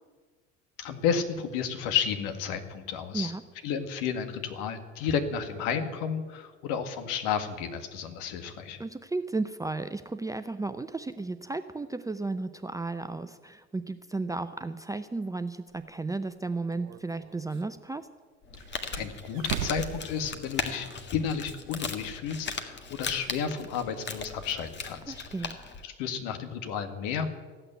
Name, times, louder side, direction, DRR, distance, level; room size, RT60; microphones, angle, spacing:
voice 1, 0.8-3.3 3.6-8.8 18.9-20.9 21.1-25.1 25.8-27.3, left 7 dB, 55° left, 7 dB, 2.0 m, -32 dB
voice 2, 8.8-18.1 25.1-25.6, right 3 dB, 10° right, 10 dB, 0.6 m, -34 dB
sound 1, 15.7-15.8 16.7-17.6 18.5-20.9 21.2-21.3 22.9-23.0, right 14 dB, 55° right, 0.6 m, -39 dB
Crumpling crinkling, 18.4-25.8, left 5 dB, 30° left, 1.8 m, -38 dB
15.0 x 8.9 x 10.0 m, 1.4 s
figure-of-eight pair, 65°, 36 cm